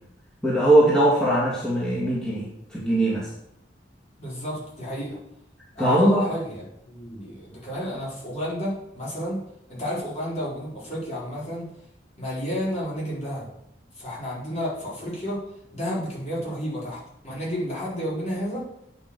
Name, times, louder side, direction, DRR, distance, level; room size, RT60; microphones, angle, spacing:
voice 1, 0.4-3.3 5.8-6.2, right 1 dB, 5° left, -8 dB, 2.2 m, -20 dB
voice 2, 4.2-5.2 5.7-9.4 9.7-11.7 12.2-13.5 14.0-15.4 15.7-18.6, equal, 40° left, -7 dB, 4.5 m, -31 dB
9.5 x 5.3 x 6.6 m, 0.79 s
head